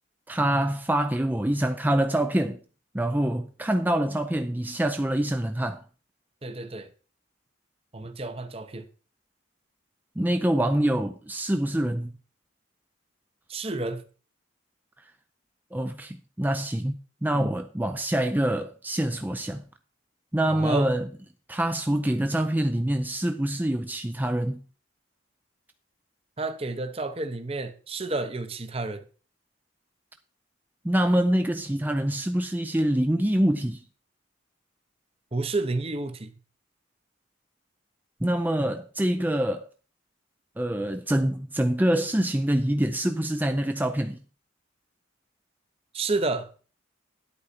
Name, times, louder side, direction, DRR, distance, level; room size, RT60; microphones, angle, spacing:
voice 1, 0.3-2.6 2.9-5.8 10.2-12.1 15.7-19.6 20.3-21.1 21.5-24.6 30.8-33.8 38.2-39.7 40.6-44.2, right 1 dB, 10° right, 0.4 m, -25 dB
voice 2, 6.4-6.9 7.9-8.9 13.5-14.0 17.3-17.5 20.5-20.9 26.4-29.0 35.3-36.3 45.9-46.5, right 3 dB, 30° right, 0.8 m, -30 dB
11.0 x 8.5 x 4.4 m
head